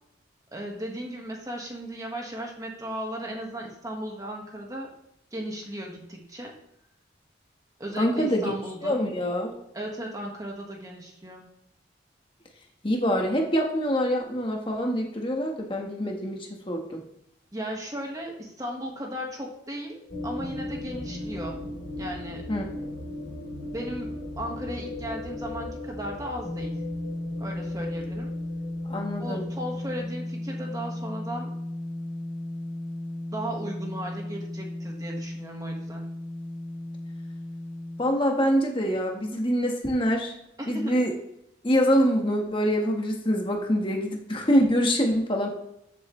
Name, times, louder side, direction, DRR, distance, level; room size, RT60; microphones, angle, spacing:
voice 1, 0.5-4.9 5.3-6.6 7.8-9.0 9.7-11.5 17.5-21.6 22.0-22.5 23.7-26.7 27.4-28.4 29.2-31.5 33.3-36.1 40.6-41.0, right 1 dB, 20° right, 0 dB, 1.6 m, -36 dB
voice 2, 8.0-8.5 8.8-9.5 12.8-17.0 22.5-22.9 28.9-29.4 38.0-40.3 40.7-41.1 41.6-45.5, equal, 25° left, 1 dB, 1.4 m, -25 dB
sound 1, 20.1-30.1, left 2 dB, 60° left, 4.6 m, -38 dB
sound 2, 26.4-38.0, left 1 dB, 10° left, 1.0 m, -35 dB
14.0 x 7.4 x 3.2 m, 0.82 s
head